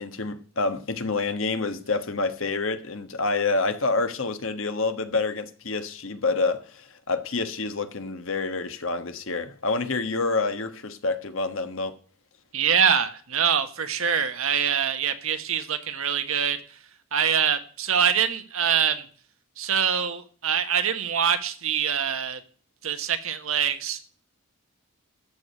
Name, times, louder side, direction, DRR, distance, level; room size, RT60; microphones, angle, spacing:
voice 1, 0.0-12.0, left 3 dB, 65° left, 1.3 m, -27 dB
voice 2, 12.5-16.8 17.1-19.0 19.6-22.4 22.8-24.0, right 7 dB, 75° right, 1.3 m, -24 dB
13.5 x 4.9 x 8.8 m
head